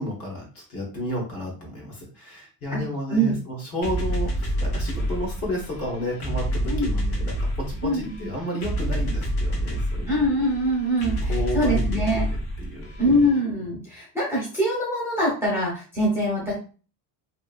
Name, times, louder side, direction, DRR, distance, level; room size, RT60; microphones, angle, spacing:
voice 1, 0.0-10.2 11.2-12.2 12.6-13.3, left 1 dB, 30° left, -2 dB, 1.0 m, -32 dB
sound 1, 3.8-13.4, equal, 60° left, 1.0 m, -28 dB
voice 2, 10.1-12.2 13.0-16.5, equal, 5° right, -6 dB, 0.8 m, -23 dB
2.8 x 2.6 x 2.4 m, 0.36 s
cardioid pair, 170°, 44 cm